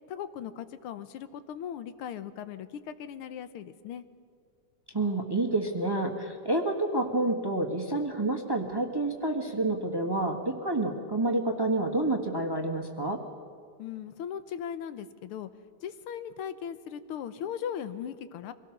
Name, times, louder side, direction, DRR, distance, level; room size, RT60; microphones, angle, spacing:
voice 1, 0.1-4.0 13.8-15.5 15.8-18.5, left 8 dB, 85° left, 12 dB, 1.7 m, -38 dB
voice 2, 4.9-13.2, right 2 dB, 15° right, 3 dB, 1.2 m, -28 dB
24.0 x 18.0 x 6.0 m, 2.2 s
omnidirectional pair, 2.3 m